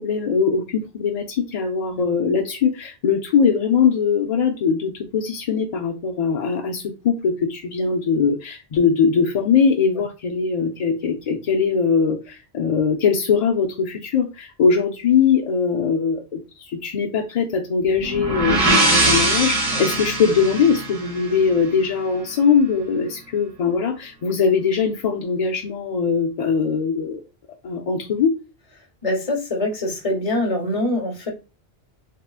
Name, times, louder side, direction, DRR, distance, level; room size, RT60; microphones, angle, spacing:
voice 1, 0.0-27.2 27.6-28.3, left 6 dB, 55° left, 0 dB, 0.4 m, -21 dB
sound 1, 18.0-21.8, right 2 dB, 35° right, 1.0 m, -21 dB
voice 2, 29.0-31.3, left 1 dB, 35° left, 2 dB, 1.0 m, -24 dB
3.6 x 2.8 x 2.3 m, 0.29 s
omnidirectional pair, 1.0 m